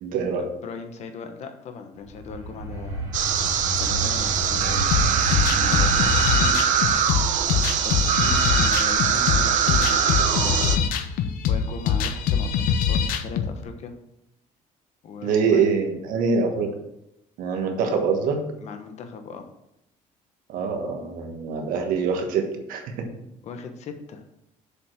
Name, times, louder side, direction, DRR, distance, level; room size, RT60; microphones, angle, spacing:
voice 1, 0.0-0.5 15.2-16.7 17.4-18.5 20.5-23.1, right 5 dB, 75° right, 4 dB, 1.4 m, -24 dB
voice 2, 0.6-3.1 3.8-6.6 7.8-10.0 10.4-10.9 11.5-13.9 15.0-15.7 18.6-19.5 23.4-24.2, left 5 dB, 50° left, 6 dB, 1.1 m, -38 dB
sound 1, 2.0-6.4, equal, 30° right, 2.5 m, -29 dB
sound 2, 3.1-10.8, right 8 dB, 60° right, 0.8 m, -22 dB
sound 3, 4.9-13.5, left 7 dB, 80° left, 0.8 m, -24 dB
6.9 x 5.1 x 6.0 m, 0.85 s
cardioid pair, 145°, 14 cm